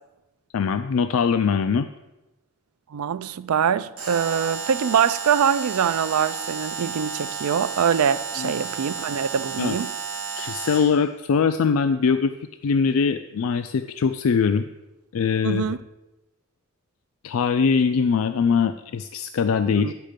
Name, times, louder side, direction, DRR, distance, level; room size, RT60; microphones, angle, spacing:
voice 1, 0.5-1.9 8.4-8.5 9.6-9.8 10.4-12.3 12.6-14.7 15.1-15.6 17.2-19.9, left 5 dB, 70° left, 0.4 m, -22 dB
voice 2, 2.9-9.9 15.4-15.8 19.8-19.9, right 7 dB, 85° right, 0.4 m, -23 dB
Alarm, 4.0-11.0, right 6 dB, 45° right, 2.7 m, -32 dB
10.0 x 6.4 x 5.1 m
head